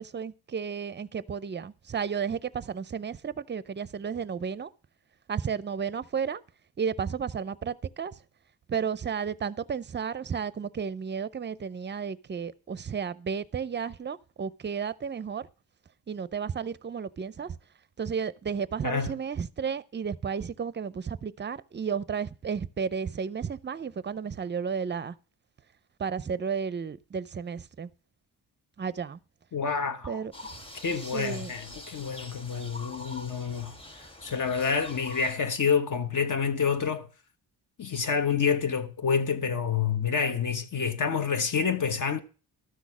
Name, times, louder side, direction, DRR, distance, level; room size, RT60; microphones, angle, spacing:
voice 1, 0.0-4.7 5.3-6.4 6.8-8.1 8.7-15.5 16.1-17.5 18.0-25.1 26.0-27.9 28.8-29.2 30.1-30.3 31.1-31.5, right 6 dB, 25° right, 0.5 m, -33 dB
voice 2, 29.5-30.2 30.8-37.1 37.8-42.2, left 6 dB, 50° left, 1.2 m, -28 dB
sound 1, 30.3-35.3, left 1 dB, 15° left, 1.3 m, -45 dB
12.5 x 6.3 x 6.0 m
wide cardioid pair, 140°, 40 cm